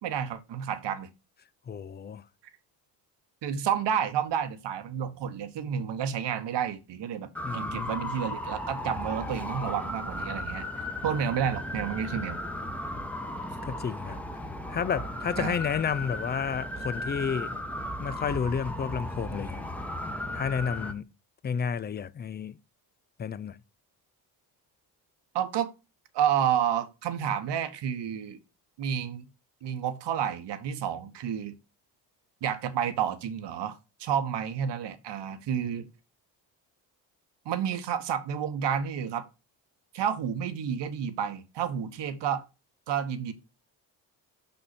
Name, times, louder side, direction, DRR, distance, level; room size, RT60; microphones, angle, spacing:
voice 1, 0.0-1.1 3.4-10.7 11.0-12.4 15.4-15.6 25.3-25.7 26.1-28.4 28.8-29.3 29.6-31.5 32.4-35.9 37.4-39.3 39.9-42.4 42.9-43.3, right 8 dB, 55° right, 1.1 m, -30 dB
voice 2, 1.7-2.2 7.4-7.9 13.6-14.2 14.7-17.5 18.0-19.7 20.3-21.1 21.4-22.6 23.2-23.6, left 7 dB, 25° left, 0.4 m, -31 dB
sound 1, 7.3-20.9, left 1 dB, 5° left, 1.0 m, -36 dB
5.4 x 5.4 x 4.2 m
hypercardioid pair, 55°, 49 cm